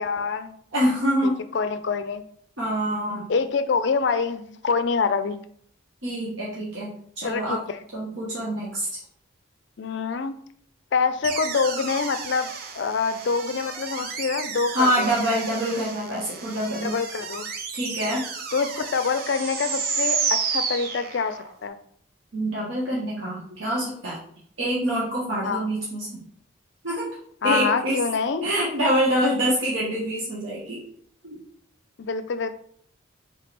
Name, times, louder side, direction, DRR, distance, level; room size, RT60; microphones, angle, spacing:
voice 1, 0.0-0.5 1.2-2.2 3.3-5.4 7.2-7.8 9.8-10.4 10.9-15.1 16.8-17.4 18.5-21.8 25.4-25.7 27.4-28.5 32.0-32.5, left 5 dB, 55° left, 10 dB, 0.4 m, -26 dB
voice 2, 0.7-1.4 2.6-3.3 6.0-7.6 7.9-8.9 14.7-16.9 17.7-18.2 22.3-24.2 24.6-26.2 26.8-27.1 27.4-28.0 28.4-30.8 31.2-31.4, equal, 65° right, -6 dB, 1.1 m, -25 dB
sound 1, 11.2-21.5, right 5 dB, 45° right, 0.5 m, -31 dB
3.6 x 3.2 x 4.2 m, 0.63 s
head